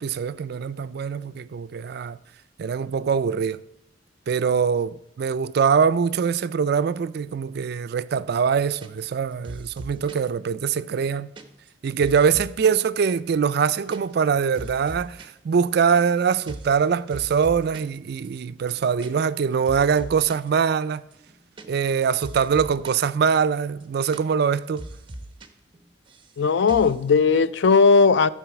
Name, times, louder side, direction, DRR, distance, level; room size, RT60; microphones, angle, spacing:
voice 1, 0.0-2.2 2.6-3.6 4.3-11.3 11.8-21.0 21.7-24.9, right 6 dB, 55° right, 0.3 m, -23 dB
sound 1, 8.8-9.2 9.4-10.3 10.7-12.8 13.1-13.2 13.5-14.0 14.2-15.3 15.5-16.1 16.5-16.8 17.1-18.0 18.2-18.3 18.6-19.4 19.7-20.5 20.9-23.1 23.3-23.4 23.7-24.5 24.8-25.5 25.7-26.4 26.7-27.0, right 1 dB, 25° right, 0.9 m, -41 dB
voice 2, 26.4-28.3, left 4 dB, 70° left, 0.4 m, -17 dB
13.5 x 4.6 x 5.9 m
head